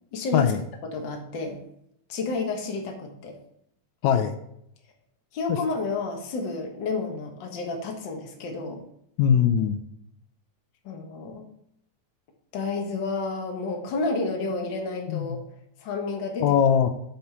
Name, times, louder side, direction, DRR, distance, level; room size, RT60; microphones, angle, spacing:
voice 1, 0.1-0.5 0.9-1.6 2.1-3.3 5.3-8.8 10.8-11.4 12.5-15.4 15.8-16.5, left 3 dB, 50° left, 2 dB, 1.7 m, -30 dB
voice 2, 4.0-4.3 5.5-5.6 9.2-9.8 15.1-15.4 16.4-16.9, left 8 dB, 80° left, 7 dB, 2.0 m, -21 dB
9.4 x 4.4 x 5.6 m, 0.75 s
omnidirectional pair, 3.3 m